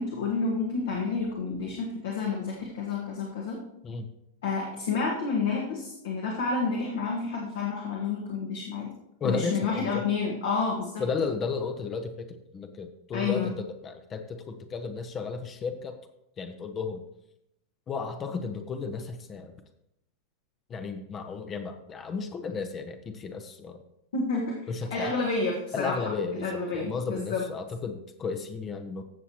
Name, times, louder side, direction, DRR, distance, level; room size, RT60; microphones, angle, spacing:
voice 1, 0.0-3.6 4.4-8.9 9.2-11.0 13.1-13.5 24.1-24.5 24.9-26.0 26.3-27.4, left 4 dB, 60° left, -2 dB, 1.7 m, -29 dB
voice 2, 9.2-10.0 11.0-15.9 16.4-17.0 17.9-19.5 20.7-23.8 24.7-25.1 25.7-29.0, left 4 dB, 25° left, 6 dB, 0.9 m, -34 dB
15.0 x 6.9 x 3.0 m, 0.81 s
figure-of-eight pair, 90°, 0 cm